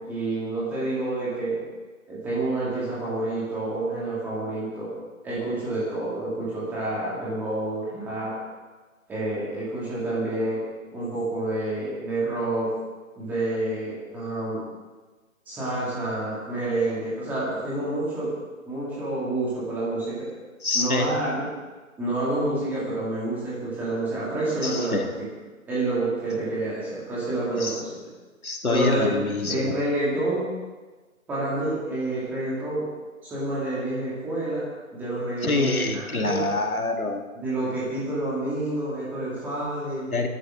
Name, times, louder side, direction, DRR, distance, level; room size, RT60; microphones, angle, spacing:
voice 1, 0.0-1.6 2.1-4.9 5.2-8.3 9.1-10.6 10.9-12.7 13.2-14.6 15.5-18.3 18.7-20.2 20.7-21.4 22.0-25.1 25.6-27.9 28.7-29.1 29.4-30.4 31.3-32.8 33.2-34.6 34.9-36.4 37.3-40.1, right 2 dB, 5° right, -9 dB, 2.7 m, -28 dB
voice 2, 20.6-21.1 24.6-25.1 27.5-27.8 28.4-29.8 35.4-37.2 40.1-40.3, left 3 dB, 90° left, 3 dB, 2.3 m, -26 dB
21.5 x 12.5 x 3.9 m, 1.3 s
figure-of-eight pair, 160°, 42 cm